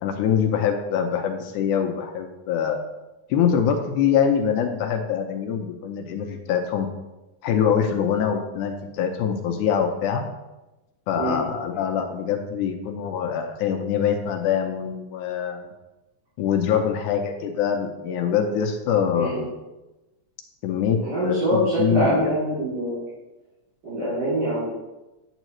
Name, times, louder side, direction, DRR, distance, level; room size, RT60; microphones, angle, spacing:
voice 1, 0.0-2.8 3.3-6.9 7.4-10.2 11.1-15.7 16.4-19.5 20.6-22.3, left 8 dB, 80° left, 4 dB, 2.0 m, -24 dB
voice 2, 21.0-23.0 23.8-24.6, equal, 40° right, -11 dB, 3.7 m, -24 dB
9.0 x 7.9 x 3.1 m, 1.0 s
omnidirectional pair, 3.8 m